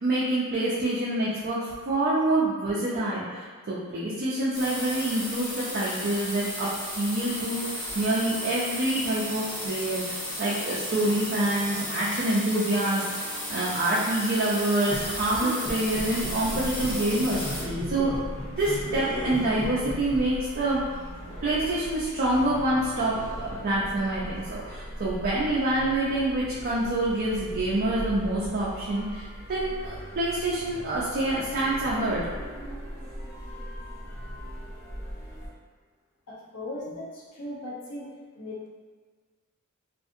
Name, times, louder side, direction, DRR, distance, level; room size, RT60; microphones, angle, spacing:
voice 1, 0.0-18.1 18.6-20.8 21.4-32.2, right 1 dB, 45° right, -7 dB, 0.4 m, -27 dB
sound 1, 4.5-17.6, equal, 45° left, 1.2 m, -34 dB
sound 2, 14.9-20.2, left 1 dB, 25° left, 0.6 m, -35 dB
sound 3, 15.8-35.5, equal, 60° left, 1.2 m, -39 dB
voice 2, 36.3-38.1 38.3-38.7, left 1 dB, 80° left, -6 dB, 0.7 m, -38 dB
2.6 x 2.4 x 2.4 m, 1.5 s
head